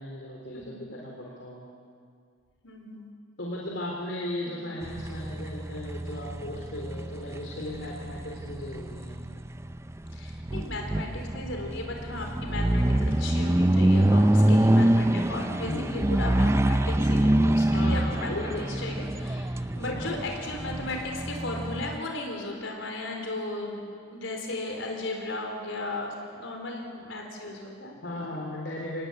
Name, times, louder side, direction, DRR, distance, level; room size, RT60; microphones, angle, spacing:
voice 1, 0.0-1.7 3.4-9.2 15.6-16.4 17.7-18.6 19.7-20.3 28.0-29.1, left 1 dB, 65° left, -2 dB, 3.5 m, -36 dB
voice 2, 2.6-3.1 4.4-4.6 10.1-12.9 13.2-28.2, left 2 dB, 80° left, 2 dB, 4.4 m, -36 dB
sound 1, 4.8-22.0, right 1 dB, 15° right, 0.5 m, -25 dB
25.0 x 19.0 x 9.6 m, 2.2 s
head